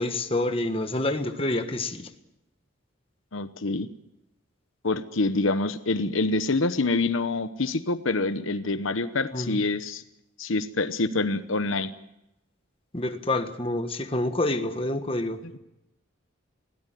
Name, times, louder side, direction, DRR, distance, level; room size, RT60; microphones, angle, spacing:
voice 1, 0.0-2.1 9.3-9.6 12.9-15.4, left 2 dB, 25° left, 1.4 m, -27 dB
voice 2, 3.3-3.9 4.8-10.0 10.4-11.9 15.4-15.6, left 3 dB, 75° left, 1.0 m, -26 dB
21.5 x 17.0 x 9.1 m
head